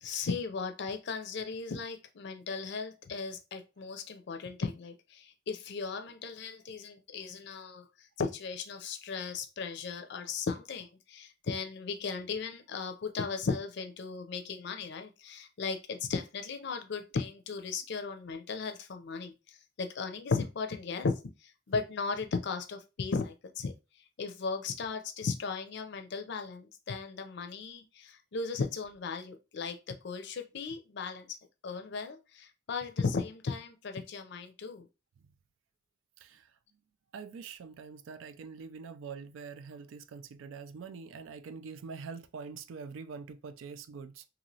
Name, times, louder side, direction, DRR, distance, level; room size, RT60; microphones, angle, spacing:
voice 1, 0.0-21.1 21.4-23.7 24.2-31.4 31.6-34.9, left 4 dB, 60° left, 0.5 m, -36 dB
voice 2, 37.1-44.3, right 5 dB, 90° right, 0.4 m, -44 dB
3.0 x 2.7 x 2.7 m
head